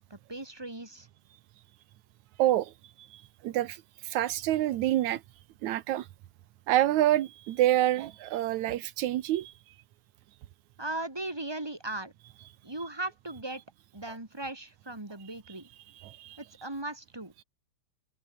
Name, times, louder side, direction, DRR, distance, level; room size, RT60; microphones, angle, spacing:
voice 1, 0.1-1.1 10.8-12.1 12.6-13.6 13.9-15.7 16.4-17.3, right 2 dB, 25° right, 0.5 m, -38 dB
voice 2, 2.4-2.7 3.0-5.2 5.6-6.1 6.7-9.5 15.9-16.4, right 13 dB, 85° right, 1.6 m, -27 dB
open air
omnidirectional pair, 4.8 m